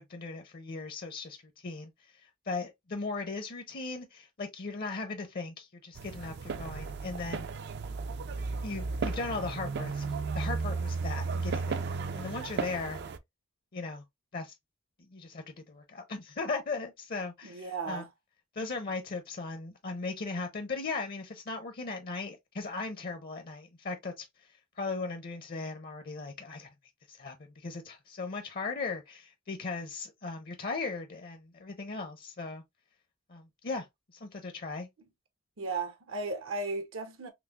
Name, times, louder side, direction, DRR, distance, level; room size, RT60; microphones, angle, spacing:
voice 1, 0.0-7.5 8.6-11.8 12.1-13.0 13.7-14.0 14.3-14.5 15.0-18.0 18.5-26.7 27.1-32.6 33.3-33.9 34.1-34.9, left 3 dB, 45° left, 0.6 m, -38 dB
sound 1, 6.0-13.2, right 4 dB, 55° right, 0.4 m, -34 dB
voice 2, 17.4-18.1 35.6-37.3, right 3 dB, 75° right, 0.8 m, -35 dB
5.8 x 2.0 x 2.3 m
head